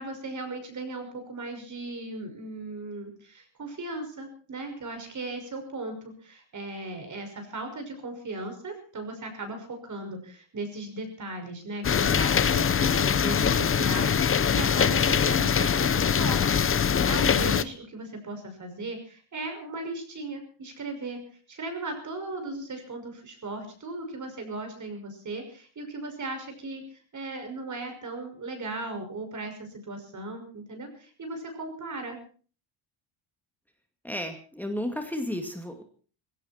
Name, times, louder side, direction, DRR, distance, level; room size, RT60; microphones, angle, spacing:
voice 1, 0.0-21.2 21.5-32.2, right 2 dB, 35° right, 5 dB, 5.9 m, -37 dB
sound 1, 11.8-17.6, left 7 dB, 25° left, 0.8 m, -23 dB
voice 2, 34.0-35.8, left 1 dB, 5° left, 5 dB, 2.2 m, -33 dB
19.5 x 17.0 x 4.4 m, 0.41 s
cardioid pair, 130°, 50 cm